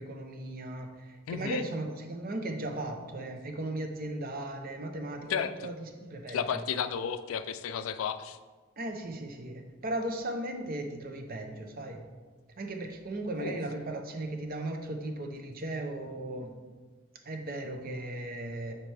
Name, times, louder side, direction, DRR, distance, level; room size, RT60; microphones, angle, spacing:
voice 1, 0.0-6.6 8.8-12.1 12.6-16.6 17.3-18.7, right 1 dB, 45° right, 4 dB, 0.7 m, -37 dB
voice 2, 1.3-1.6 5.3-5.7 6.3-8.4 13.3-13.6, left 7 dB, 90° left, 12 dB, 0.4 m, -33 dB
7.4 x 4.4 x 3.3 m, 1.4 s
head